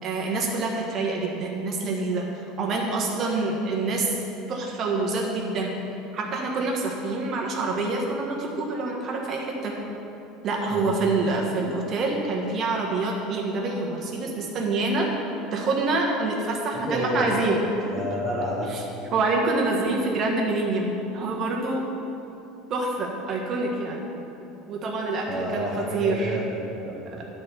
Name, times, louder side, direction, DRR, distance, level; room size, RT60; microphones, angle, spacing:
voice 1, 0.0-2.3 2.6-4.1 4.5-5.7 6.1-9.8 10.4-15.1 15.5-17.6 18.7-18.8 19.1-21.8 22.7-24.1 24.7-26.4, right 3 dB, 35° right, -1 dB, 1.4 m, -26 dB
voice 2, 16.9-17.3 17.9-18.7 25.3-27.2, equal, 10° left, -6 dB, 1.1 m, -30 dB
11.5 x 4.4 x 6.9 m, 2.9 s
cardioid pair, 150°, 0 cm